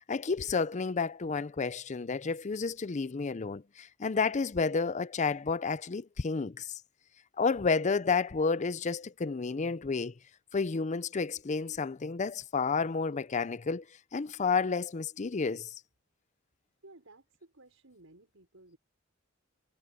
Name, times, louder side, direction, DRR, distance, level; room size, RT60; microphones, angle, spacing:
voice 1, 0.1-6.8 7.4-10.1 10.5-13.8 14.1-15.7, left 4 dB, 35° left, 0.5 m, -31 dB
voice 2, 16.8-18.8, right 2 dB, 85° right, 5.5 m, -56 dB
head